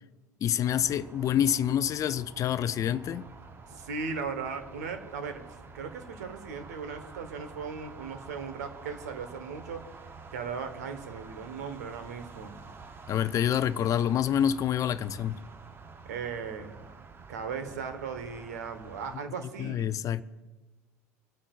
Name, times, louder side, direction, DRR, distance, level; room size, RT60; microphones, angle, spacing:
voice 1, 0.4-3.3 13.1-15.4 19.6-20.2, left 10 dB, 40° left, 0.5 m, -27 dB
sound 1, 0.6-19.2, right 4 dB, 25° right, 0.9 m, -49 dB
voice 2, 3.7-5.4 5.7-9.8 10.3-12.6 16.1-16.7 17.3-19.9, right 5 dB, 75° right, 1.3 m, -37 dB
26.0 x 8.7 x 2.5 m
hypercardioid pair, 75°, 9 cm